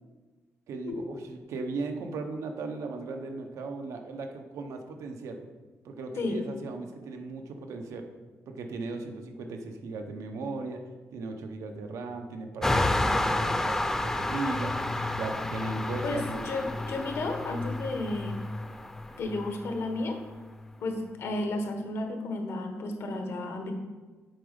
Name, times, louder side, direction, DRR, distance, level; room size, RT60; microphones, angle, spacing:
voice 1, 0.7-5.4 5.8-8.1 8.5-10.8 11.1-14.7 15.2-16.5, right 3 dB, 80° right, 4 dB, 0.9 m, -37 dB
sound 1, 12.6-20.6, left 2 dB, 10° left, 0.3 m, -30 dB
voice 2, 16.0-18.4 19.2-20.2 20.8-23.7, left 2 dB, 55° left, 4 dB, 1.1 m, -32 dB
7.7 x 4.9 x 5.1 m, 1.3 s
wide cardioid pair, 175°, 5 cm